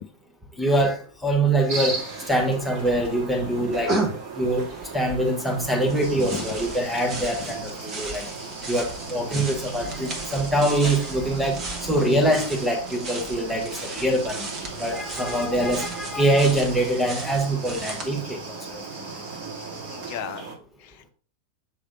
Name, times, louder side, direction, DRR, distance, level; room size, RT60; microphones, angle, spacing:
voice 1, 0.6-2.0 2.3-3.9 4.4-4.6 4.9-8.3 8.7-14.5 14.8-18.4 18.7-18.8, right 1 dB, ahead, 1.2 m, -24 dB
sound 1, 1.7-20.5, right 4 dB, 40° right, 1.8 m, -37 dB
sound 2, 2.2-2.9 3.3-18.1, right 2 dB, 25° right, 1.3 m, -35 dB
sound 3, 6.0-20.2, right 2 dB, 60° right, 2.3 m, -44 dB
voice 2, 19.9-20.4 20.8-21.1, left 8 dB, 45° left, 0.5 m, -35 dB
7.4 x 3.3 x 3.8 m
figure-of-eight pair, 90°, 0 cm